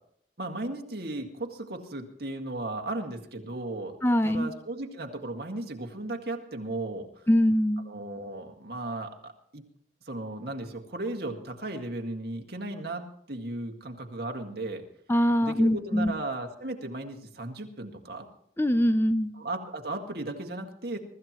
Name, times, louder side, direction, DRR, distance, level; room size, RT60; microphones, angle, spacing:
voice 1, 0.4-4.0 4.2-7.1 7.9-9.6 10.1-14.9 15.4-18.3 19.4-21.0, right 2 dB, 60° right, 3 dB, 1.9 m, -36 dB
voice 2, 4.0-4.5 7.3-7.8 15.1-16.1 18.6-19.3, equal, 15° left, 10 dB, 0.5 m, -23 dB
23.5 x 14.0 x 3.0 m, 0.67 s
head